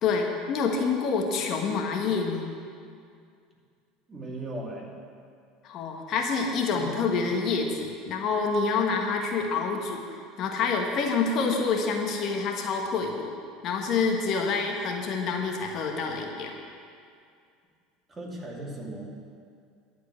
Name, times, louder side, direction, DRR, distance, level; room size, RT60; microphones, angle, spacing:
voice 1, 0.0-2.5 5.6-10.0 10.4-13.3 13.6-16.5, left 4 dB, 50° left, 2 dB, 1.2 m, -27 dB
voice 2, 4.1-4.9 6.7-6.9 18.1-19.1, right 1 dB, 25° right, -3 dB, 2.6 m, -37 dB
11.0 x 4.6 x 8.3 m, 2.3 s
hypercardioid pair, 80°, 0 cm